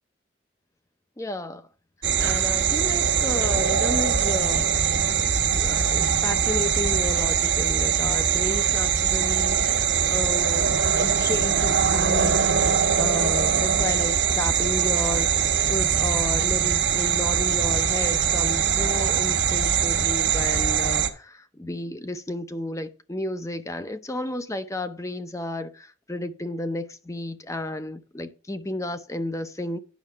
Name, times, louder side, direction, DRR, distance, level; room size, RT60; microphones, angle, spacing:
voice 1, 1.2-1.7 2.2-4.7 5.5-29.8, left 1 dB, 15° left, 0.6 m, -32 dB
sound 1, 2.0-21.1, right 7 dB, 75° right, 1.2 m, -22 dB
9.3 x 6.4 x 4.6 m
head